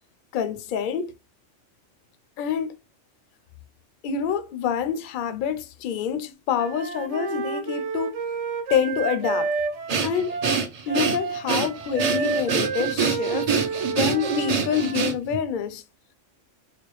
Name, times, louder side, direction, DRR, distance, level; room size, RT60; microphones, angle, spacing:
voice 1, 0.3-1.1 2.4-2.7 4.0-8.1 8.7-9.5 10.0-10.4 10.9-13.5 13.9-15.8, left 8 dB, 60° left, 0.5 m, -27 dB
Wind instrument woodwind instrument, 6.6-15.1, right 4 dB, 70° right, 1.0 m, -30 dB
Breathing, 9.9-15.4, right 5 dB, 50° right, 0.5 m, -25 dB
4.2 x 2.3 x 3.0 m
omnidirectional pair, 1.3 m